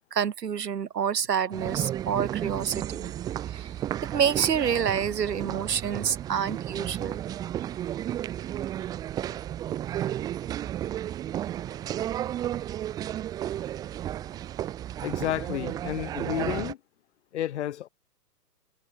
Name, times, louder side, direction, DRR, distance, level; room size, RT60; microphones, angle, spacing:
voice 1, 0.1-3.1 3.5-3.7 4.1-7.2, right 8 dB, 80° right, 4.9 m, -28 dB
sound 1, 1.5-16.7, right 12 dB, 10° right, 1.1 m, -33 dB
voice 2, 15.0-16.8 17.3-17.9, left 12 dB, 45° left, 6.1 m, -31 dB
hypercardioid pair, 170°, 48 cm